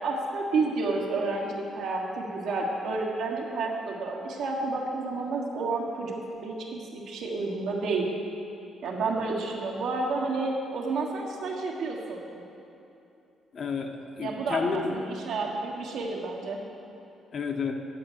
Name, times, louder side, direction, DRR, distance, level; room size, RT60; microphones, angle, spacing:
voice 1, 0.0-6.1 6.4-8.1 8.8-12.2 14.2-16.6, right 3 dB, 80° right, -2 dB, 1.6 m, -30 dB
voice 2, 13.5-15.0 17.3-17.7, left 5 dB, 55° left, 4 dB, 0.9 m, -30 dB
9.0 x 7.7 x 6.5 m, 2.8 s
cardioid pair, 90°, 0 cm